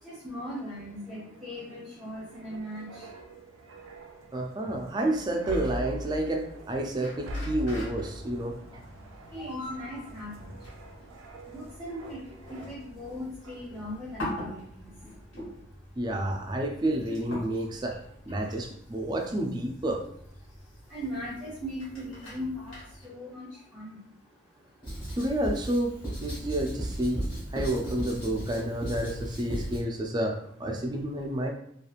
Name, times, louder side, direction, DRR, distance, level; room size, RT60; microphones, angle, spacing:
voice 1, 0.0-3.0 9.3-10.4 11.5-14.6 20.9-22.7 23.0-23.9, equal, ahead, -8 dB, 0.7 m, -38 dB
sound 1, 0.8-13.1 13.4-13.7, right 1 dB, 85° right, 0.5 m, -43 dB
voice 2, 4.3-8.6 16.0-18.0 18.3-20.0 25.1-25.9 26.2-27.2 27.5-31.5, right 1 dB, 20° right, 2 dB, 0.3 m, -30 dB
sound 2, 7.0-23.1, left 1 dB, 75° left, 1.3 m, -44 dB
Writing, 24.8-29.8, right 1 dB, 20° left, 1.2 m, -36 dB
2.9 x 2.4 x 2.4 m, 0.68 s
head